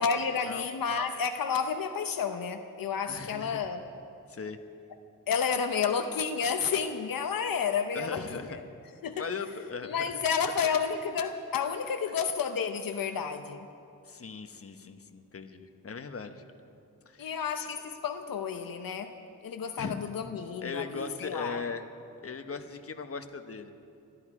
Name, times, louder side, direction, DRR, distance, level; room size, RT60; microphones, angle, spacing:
voice 1, 0.0-3.8 5.3-8.6 9.0-9.3 9.8-13.7 17.2-19.1 19.4-21.6, left 6 dB, 80° left, 6 dB, 0.8 m, -31 dB
voice 2, 3.1-3.7 4.3-4.6 7.9-8.6 9.2-10.2 14.1-16.4 17.1-17.4 19.8-20.1 20.6-21.8 22.2-23.7, left 5 dB, 45° left, 7 dB, 1.1 m, -39 dB
22.0 x 13.0 x 4.9 m, 2.6 s
cardioid pair, 65°, 34 cm